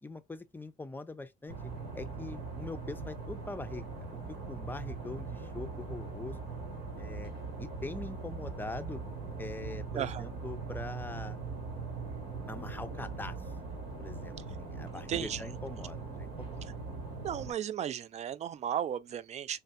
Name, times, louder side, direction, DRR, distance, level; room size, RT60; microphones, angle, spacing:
voice 1, 0.0-1.6 1.9-3.9 4.3-6.4 7.0-7.3 7.6-9.0 9.4-11.4 12.5-13.4 14.0-16.6, left 2 dB, 10° left, 0.5 m, -43 dB
sound 1, 1.5-17.5, right 4 dB, 80° right, 1.8 m, -41 dB
voice 2, 9.9-10.3 15.1-15.5 17.2-19.6, right 9 dB, 40° right, 0.4 m, -35 dB
3.5 x 2.7 x 3.3 m
cardioid pair, 110°, 17 cm